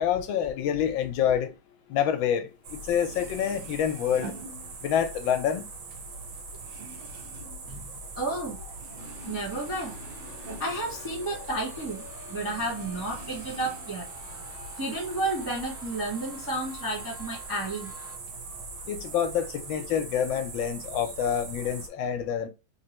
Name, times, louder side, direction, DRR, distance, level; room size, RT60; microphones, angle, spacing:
voice 1, 0.0-1.5 1.9-4.3 4.8-5.6 18.9-22.5, left 9 dB, 80° left, 1.4 m, -27 dB
sound 1, 2.6-21.9, right 3 dB, 80° right, 1.7 m, -42 dB
sound 2, 2.7-2.8 3.0-5.2 5.5-8.5 8.7-11.7 12.0-12.1 12.6-14.1 14.4-15.2, right 2 dB, 65° right, 1.7 m, -46 dB
voice 2, 7.7-14.1 14.8-17.9, right 2 dB, 20° right, 0.5 m, -32 dB
sound 3, 9.0-18.2, left 3 dB, 45° left, 0.6 m, -48 dB
3.6 x 3.0 x 2.8 m
omnidirectional pair, 2.2 m